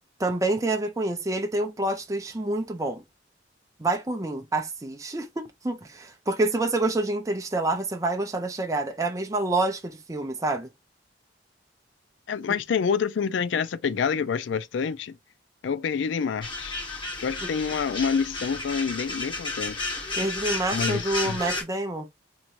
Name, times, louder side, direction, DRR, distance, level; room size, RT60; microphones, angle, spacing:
voice 1, 0.2-3.0 3.8-10.7 20.2-22.1, right 2 dB, 20° right, 0.5 m, -27 dB
voice 2, 12.3-15.2 15.6-16.8 17.2-19.8 20.7-21.4, left 6 dB, 80° left, 0.4 m, -27 dB
sound 1, 16.4-21.6, left 2 dB, 25° left, 1.2 m, -32 dB
4.4 x 2.8 x 2.5 m
head